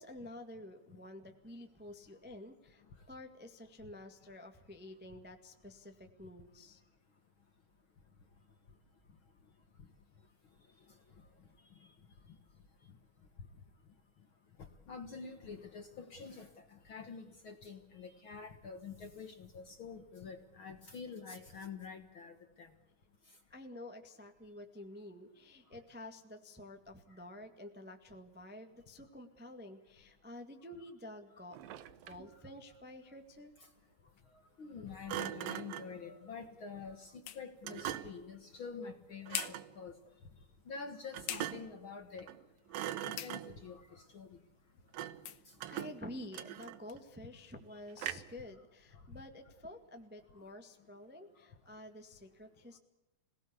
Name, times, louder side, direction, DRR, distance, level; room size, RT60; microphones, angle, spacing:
voice 1, 0.0-6.8 23.5-31.8 32.0-33.5 45.7-52.8, left 1 dB, 5° right, 5 dB, 0.8 m, -50 dB
voice 2, 14.9-16.5 16.9-22.7 34.6-39.9 40.7-42.3 43.0-44.3, left 5 dB, 50° left, 7 dB, 1.6 m, -47 dB
Thump thud, 31.5-32.3 35.1-36.0 37.6-38.3 39.3-39.7 41.1-41.8 42.2-42.4 42.7-43.7 44.9-45.3 45.6-47.0 48.0-48.4, right 12 dB, 90° right, 2.8 m, -42 dB
sound 1, 35.5-47.0, left 11 dB, 85° left, 2.9 m, -49 dB
26.5 x 18.0 x 8.3 m, 0.97 s
omnidirectional pair, 3.9 m